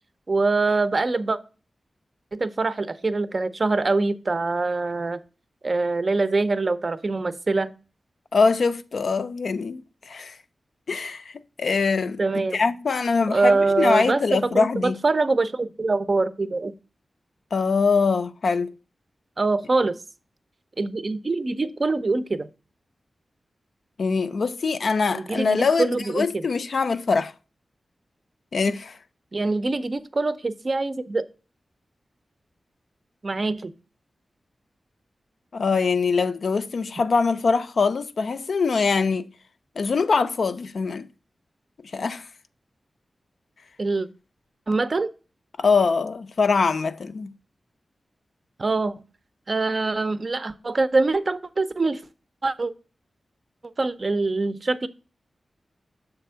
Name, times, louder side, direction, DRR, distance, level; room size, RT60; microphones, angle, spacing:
voice 1, 0.3-1.4 2.3-5.2 5.6-7.7 12.2-12.6 13.3-16.7 19.4-20.0 20.8-22.5 25.1-26.4 29.3-31.2 33.2-33.7 43.8-44.1 44.7-45.1 48.6-48.9 49.5-52.0 52.4-52.7 53.8-54.9, right 3 dB, 40° right, 0.5 m, -24 dB
voice 2, 8.3-10.4 10.9-12.2 12.5-15.0 17.5-18.7 24.0-27.3 28.5-29.0 35.5-39.3 39.8-41.1 41.9-42.3 45.6-47.3, left 4 dB, 70° left, 0.4 m, -23 dB
6.9 x 3.4 x 5.5 m
wide cardioid pair, 105°, 0 cm